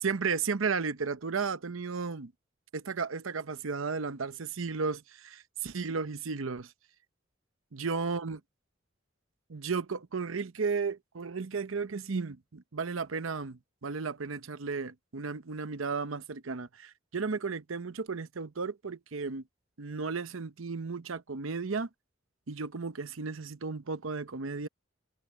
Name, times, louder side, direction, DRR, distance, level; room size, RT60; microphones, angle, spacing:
voice 1, 0.0-2.3 2.7-6.7 7.7-8.4 9.5-19.4 19.8-21.9 22.5-24.7, right 5 dB, 85° right, 0.8 m, -34 dB
head